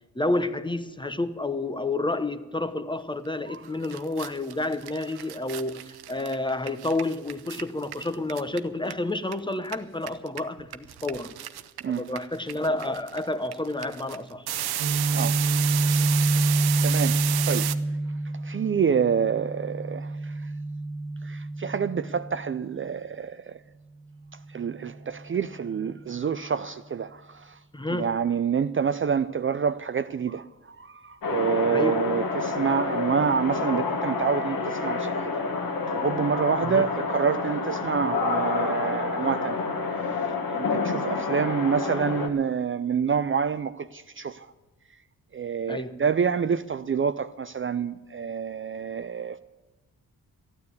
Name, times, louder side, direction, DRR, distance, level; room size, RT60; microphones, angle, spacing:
voice 1, 0.1-11.4 11.9-14.5 27.7-28.2 31.7-32.0 36.6-36.8 45.7-46.0, left 2 dB, 15° left, 0.9 m, -30 dB
sound 1, 3.5-3.6 3.8-9.3 9.6-17.7, right 12 dB, 85° right, 0.7 m, -32 dB
Guitar, 14.8-22.6, right 2 dB, 70° right, 1.4 m, -27 dB
voice 2, 16.8-17.7 18.4-20.3 21.2-23.6 24.5-27.6 27.9-35.3 35.9-39.6 40.5-44.5 45.3-49.4, right 6 dB, 35° right, 0.5 m, -27 dB
sound 2, 31.2-42.3, left 4 dB, 65° left, 1.8 m, -28 dB
13.5 x 9.5 x 8.4 m
cardioid pair, 65°, 37 cm